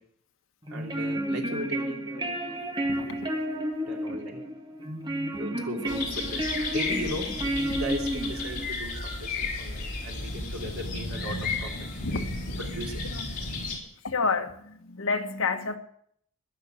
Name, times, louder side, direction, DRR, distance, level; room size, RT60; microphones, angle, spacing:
sound 1, 0.6-8.7, right 1 dB, 20° right, 1.7 m, -31 dB
voice 1, 0.7-3.2 3.9-4.4 5.1-6.4 6.7-11.7 12.1-12.2 12.6-13.0, right 1 dB, 85° right, 0 dB, 3.1 m, -37 dB
voice 2, 2.8-3.3 12.0-12.4 13.1-13.3 14.0-15.8, left 4 dB, 65° left, 6 dB, 1.4 m, -29 dB
sound 2, 5.8-13.8, left 3 dB, 45° left, 4.1 m, -33 dB
21.0 x 7.1 x 6.4 m, 0.66 s
head